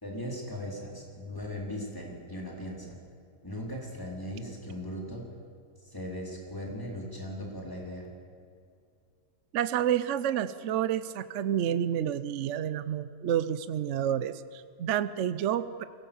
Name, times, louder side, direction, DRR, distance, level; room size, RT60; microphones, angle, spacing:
voice 1, 0.0-3.0 3.4-5.3 5.8-8.1, equal, 15° left, -1 dB, 4.1 m, -38 dB
voice 2, 9.5-15.8, right 10 dB, 60° right, 13 dB, 0.8 m, -29 dB
23.0 x 17.5 x 7.1 m, 2.4 s
omnidirectional pair, 1.7 m